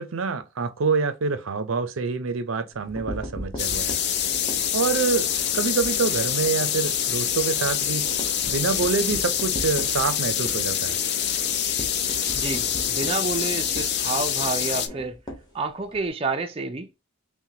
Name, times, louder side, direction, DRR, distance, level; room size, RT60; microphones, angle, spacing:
voice 1, 0.0-4.0 4.7-5.3 5.5-8.0 8.5-11.0, right 4 dB, 80° right, 0.5 m, -26 dB
sound 1, 2.7-5.9 6.3-6.5 6.8-6.9 7.2-16.1, equal, 20° left, 1.2 m, -39 dB
sound 2, 3.6-14.9, left 9 dB, 55° left, 0.5 m, -25 dB
voice 2, 12.3-15.2 15.5-17.0, right 3 dB, 25° right, 0.4 m, -29 dB
5.7 x 2.2 x 2.8 m
head